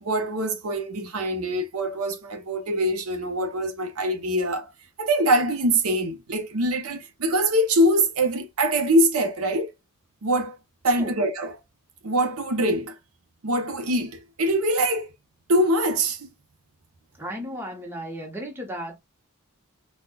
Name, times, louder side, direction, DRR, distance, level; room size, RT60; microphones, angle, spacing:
voice 1, 0.0-4.7 5.0-9.7 10.2-10.6 10.8-11.5 12.0-13.0 13.4-15.1 15.5-16.3, right 1 dB, 85° right, 0.8 m, -23 dB
voice 2, 17.2-19.0, equal, 10° right, 0.8 m, -34 dB
4.1 x 2.3 x 2.3 m
head